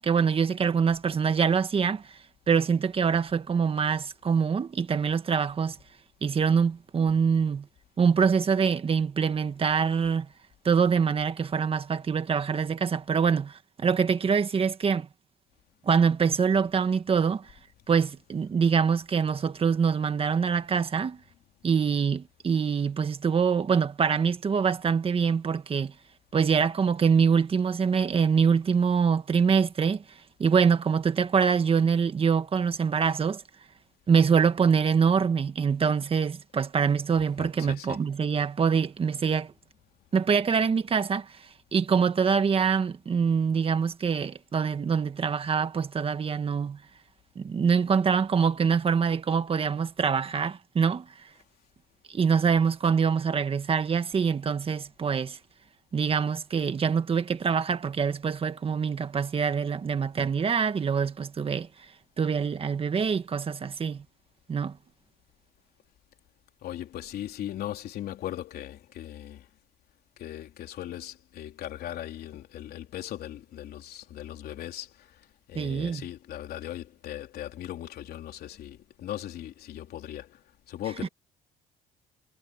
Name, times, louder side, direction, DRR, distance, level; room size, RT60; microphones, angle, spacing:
voice 1, 0.0-2.2 2.5-5.8 6.2-7.7 8.0-10.3 10.6-15.1 15.8-17.5 17.9-21.2 21.6-25.9 26.3-30.0 30.4-33.4 34.1-39.5 40.1-41.4 41.7-46.8 47.3-51.1 52.1-55.4 55.9-61.7 62.2-64.0 64.5-64.8 75.5-76.1 81.0-81.1, right 6 dB, 35° right, 1.6 m, -24 dB
voice 2, 37.2-38.0 66.6-69.5 70.2-75.2 75.5-80.4 80.7-81.1, left 12 dB, 65° left, 3.6 m, -39 dB
cardioid pair, 110°, 17 cm